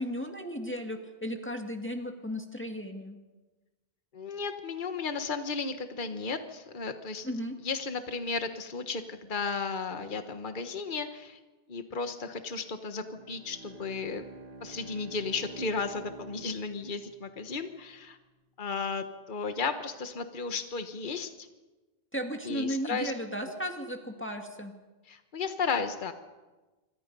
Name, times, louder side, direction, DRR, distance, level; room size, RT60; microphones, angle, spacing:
voice 1, 0.0-3.2 7.2-7.5 22.1-24.7, equal, 10° left, 3 dB, 2.0 m, -35 dB
voice 2, 4.1-7.3 7.6-11.4 11.7-14.3 14.6-18.2 18.6-21.5 22.4-23.1 25.1-26.1, left 4 dB, 50° left, 7 dB, 1.5 m, -34 dB
Bowed string instrument, 13.0-17.8, right 2 dB, 90° right, 1.9 m, -49 dB
26.5 x 25.5 x 5.4 m, 1.2 s
omnidirectional pair, 1.1 m